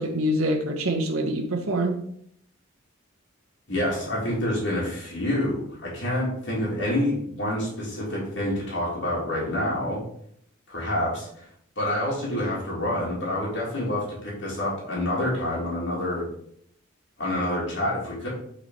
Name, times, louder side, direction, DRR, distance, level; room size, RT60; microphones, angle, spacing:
voice 1, 0.0-2.0, right 1 dB, 85° right, 2 dB, 0.9 m, -25 dB
voice 2, 3.7-10.0 10.7-11.5 11.8-16.2 17.2-18.3, left 1 dB, 60° left, -6 dB, 2.1 m, -27 dB
5.7 x 4.2 x 4.5 m, 0.67 s
head